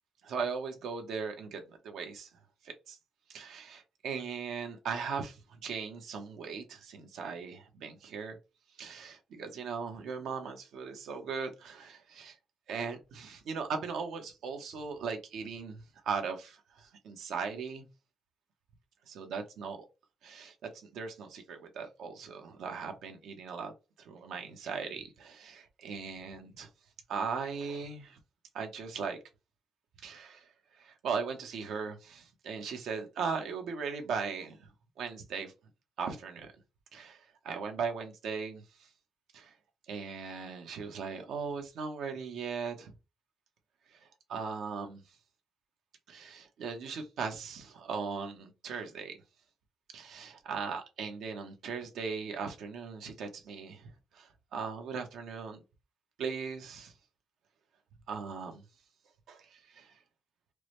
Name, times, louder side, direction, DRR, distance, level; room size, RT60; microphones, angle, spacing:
voice 1, 0.2-2.3 2.6-3.0 3.3-8.4 8.8-12.3 12.7-15.8 16.0-17.9 19.1-19.9 20.2-20.5 20.9-23.7 24.0-26.7 27.1-28.2 28.5-29.2 30.0-30.4 30.8-34.6 35.0-35.5 36.0-36.5 36.9-37.2 37.4-38.6 39.3-39.5 39.9-42.9 44.3-45.0 46.1-49.2 49.9-53.9 54.1-55.6 56.2-56.9 58.1-58.6 59.3-59.9, right 5 dB, 75° right, 0.8 m, -38 dB
4.6 x 2.1 x 3.1 m
cardioid pair, 155°, 0 cm